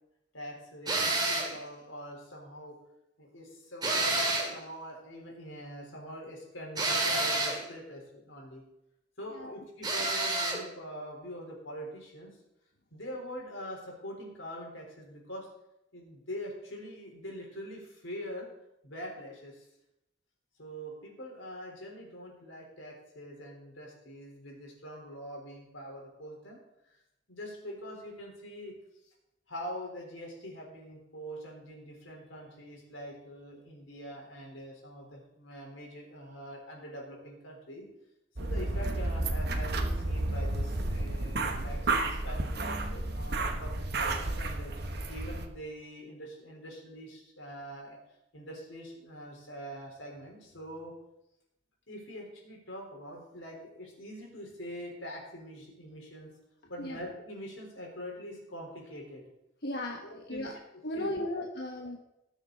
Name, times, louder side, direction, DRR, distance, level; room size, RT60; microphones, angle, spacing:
voice 1, 0.3-2.8 3.2-8.6 9.2-12.4 12.9-15.5 15.9-18.5 18.8-19.7 20.6-26.6 26.9-27.0 27.3-28.8 29.0-29.1 29.5-37.9 38.4-48.0 48.3-50.9 51.9-56.3 56.7-59.2 60.0-60.5 60.7-61.3 61.8-61.9, equal, 85° left, -1 dB, 4.0 m, -44 dB
sound 1, 0.9-1.6 3.8-4.6 6.8-7.6 9.8-10.6, right 2 dB, 20° right, 2.4 m, -29 dB
sound 2, 38.4-45.5, right 2 dB, 55° right, 1.2 m, -31 dB
voice 2, 59.6-60.5 60.8-62.0, left 1 dB, 55° left, 1 dB, 1.1 m, -36 dB
19.0 x 7.1 x 4.0 m, 0.84 s
head